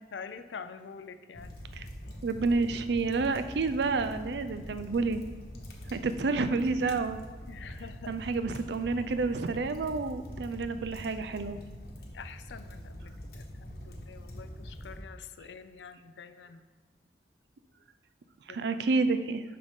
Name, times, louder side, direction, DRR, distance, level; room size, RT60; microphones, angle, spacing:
voice 1, 0.1-1.5 7.5-8.2 12.0-16.6 18.5-18.6, left 5 dB, 80° left, 11 dB, 0.5 m, -46 dB
sound 1, 1.3-15.0, equal, 55° left, 1.1 m, -44 dB
voice 2, 2.2-5.2 5.9-7.2 8.1-11.6 18.5-19.4, right 3 dB, 70° right, 10 dB, 0.4 m, -29 dB
11.0 x 3.9 x 3.6 m, 1.4 s
head